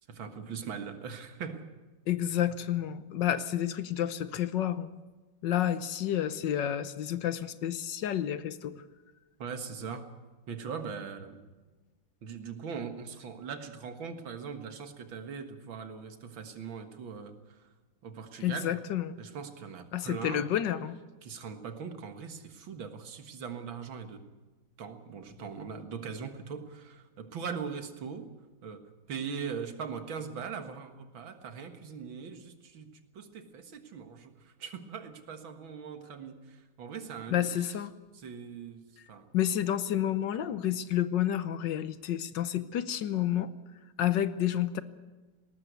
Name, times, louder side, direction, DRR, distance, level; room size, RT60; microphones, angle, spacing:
voice 1, 0.1-1.7 2.3-2.4 9.4-10.1 10.5-11.4 12.2-17.7 18.0-18.8 19.2-20.5 21.2-24.2 24.8-28.3 28.6-37.7 38.1-39.3, right 6 dB, 80° right, 7 dB, 2.4 m, -41 dB
voice 2, 2.1-4.9 5.4-8.8 18.4-19.2 19.9-21.0 37.3-37.9 39.3-43.5 44.0-44.8, left 11 dB, 70° left, 13 dB, 1.5 m, -30 dB
19.0 x 19.0 x 8.2 m, 1.2 s
omnidirectional pair, 2.1 m